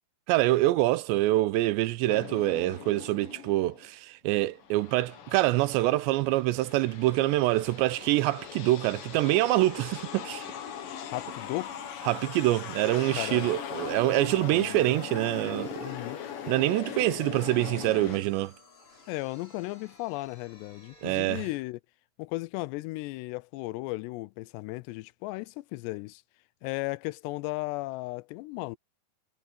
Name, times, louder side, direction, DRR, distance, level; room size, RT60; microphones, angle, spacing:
voice 1, 0.3-10.5 12.1-15.9 16.5-18.5 21.0-21.5, right 17 dB, 85° right, 3.0 m, -25 dB
sound 1, 2.1-3.9 4.4-18.2, left 8 dB, 60° left, 3.0 m, -40 dB
sound 2, 6.5-21.5, left 2 dB, 30° left, 8.0 m, -56 dB
voice 2, 11.1-11.8 13.2-13.5 14.5-14.8 15.8-16.2 19.1-21.8 22.2-26.2 26.6-28.8, left 21 dB, 85° left, 2.6 m, -35 dB
omnidirectional pair, 5.0 m